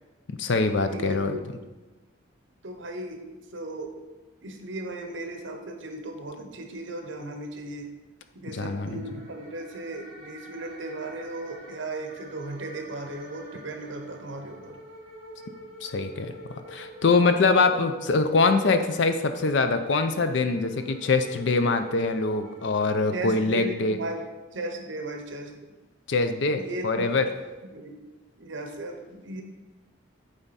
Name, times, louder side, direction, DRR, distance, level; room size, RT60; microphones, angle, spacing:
voice 1, 0.3-1.4 8.5-9.0 15.8-16.3 16.7-24.0 26.1-27.3, left 3 dB, 65° left, 8 dB, 0.5 m, -24 dB
voice 2, 0.9-1.4 2.6-3.2 3.5-4.0 4.4-7.9 8.3-14.8 23.1-24.3 24.5-25.6 26.5-27.1 27.6-28.0 28.4-29.4, right 2 dB, 70° right, 4 dB, 0.9 m, -36 dB
sound 1, 8.6-23.9, right 1 dB, 30° right, 2.1 m, -45 dB
8.8 x 3.6 x 4.1 m, 1.2 s
head